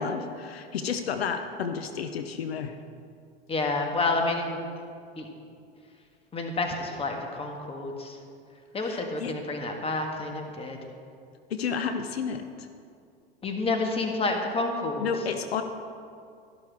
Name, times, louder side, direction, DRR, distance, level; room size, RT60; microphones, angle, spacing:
voice 1, 0.0-2.8 8.8-9.3 11.5-12.7 15.0-15.6, left 6 dB, 80° left, 8 dB, 0.7 m, -31 dB
voice 2, 3.5-4.6 5.2-5.3 6.3-8.2 8.7-10.8 13.4-15.1, left 3 dB, 20° left, 3 dB, 1.6 m, -29 dB
12.5 x 11.5 x 3.6 m, 2.4 s
hypercardioid pair, 85°, 30 cm